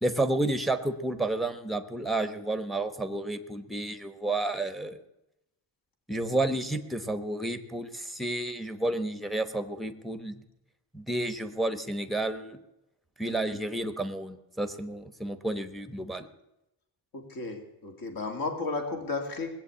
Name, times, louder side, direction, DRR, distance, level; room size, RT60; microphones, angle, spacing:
voice 1, 0.0-5.0 6.1-10.4 10.9-12.6 13.2-16.3, right 2 dB, ahead, 9 dB, 0.9 m, -31 dB
voice 2, 17.1-19.5, left 3 dB, 50° left, 4 dB, 2.4 m, -33 dB
19.5 x 8.1 x 8.5 m, 0.89 s
cardioid pair, 160°, 43 cm